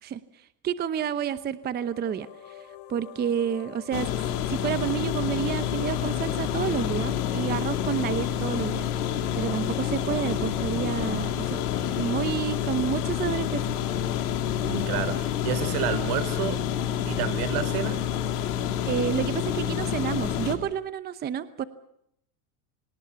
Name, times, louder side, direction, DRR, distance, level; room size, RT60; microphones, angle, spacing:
voice 1, 0.0-4.1 4.5-11.6 12.0-13.6 18.9-21.6, right 9 dB, 20° right, 13 dB, 0.8 m, -30 dB
sound 1, 1.5-16.2, left 9 dB, 60° left, 4.4 m, -45 dB
sound 2, 3.9-20.6, left 9 dB, 80° left, 3.5 m, -28 dB
voice 2, 14.6-16.6 17.1-18.0, right 9 dB, 70° right, 14 dB, 3.7 m, -30 dB
27.0 x 19.0 x 7.0 m, 0.76 s
supercardioid pair, 140°, 45 cm